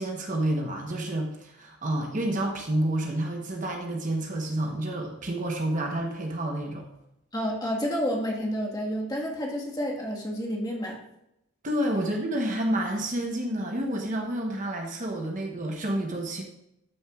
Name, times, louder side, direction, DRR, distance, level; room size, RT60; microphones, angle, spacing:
voice 1, 0.0-6.8 11.6-16.4, right 1 dB, 35° right, 2 dB, 1.0 m, -29 dB
voice 2, 7.3-11.0, equal, 20° left, -2 dB, 1.6 m, -30 dB
12.5 x 6.2 x 2.4 m, 0.81 s
head